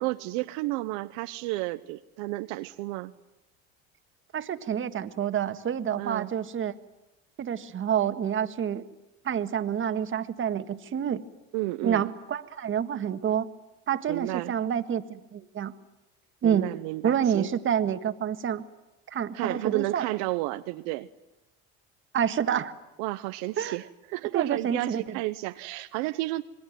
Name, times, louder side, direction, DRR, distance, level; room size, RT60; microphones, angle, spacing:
voice 1, 0.0-3.1 6.0-6.3 11.5-12.0 14.1-14.5 16.4-17.5 19.3-21.1 23.0-26.4, right 19 dB, 75° right, 9 dB, 1.0 m, -32 dB
voice 2, 4.3-6.7 7.4-8.8 9.2-11.2 11.8-13.5 13.9-15.7 16.4-16.7 17.0-18.6 19.1-20.0 22.1-22.7 23.6-23.8 24.3-25.2, right 8 dB, 40° right, 9 dB, 1.7 m, -28 dB
27.0 x 21.5 x 9.2 m, 0.94 s
supercardioid pair, 100°, 32 cm